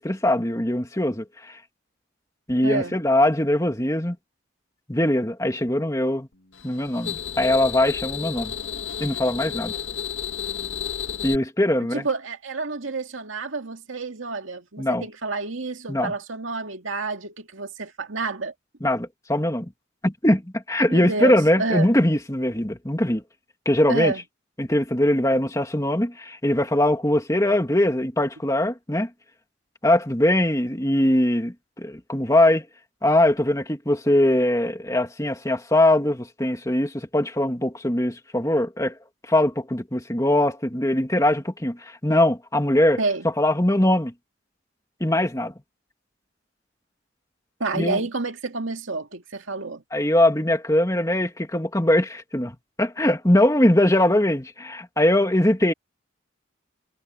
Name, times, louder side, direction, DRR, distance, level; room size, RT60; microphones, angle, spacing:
voice 1, 0.0-1.5 2.5-4.2 4.9-6.3 6.6-8.5 9.0-9.7 11.2-12.1 14.8-15.0 15.9-16.1 18.8-19.7 20.0-23.2 23.7-24.1 24.6-29.1 29.8-32.6 33.0-39.0 39.3-43.0 43.4-44.1 45.0-45.5 47.7-48.0 49.9-52.5 52.8-55.7, left 1 dB, 15° left, 2.4 m, -21 dB
voice 2, 2.6-3.0 11.9-18.5 20.9-21.9 23.9-24.2 43.0-43.3 47.6-49.8, right 3 dB, 90° right, 2.3 m, -29 dB
sound 1, 6.5-11.4, left 8 dB, 75° left, 2.2 m, -32 dB
head